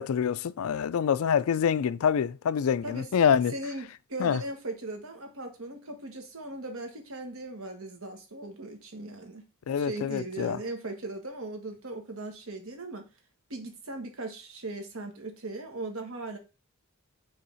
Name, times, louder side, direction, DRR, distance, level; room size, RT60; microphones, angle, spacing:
voice 1, 0.0-3.5 4.2-4.4 9.7-10.6, left 7 dB, 75° left, 0.4 m, -26 dB
voice 2, 3.5-9.5 9.8-13.0 13.5-16.4, right 2 dB, 70° right, 1.4 m, -38 dB
5.5 x 3.5 x 5.5 m
head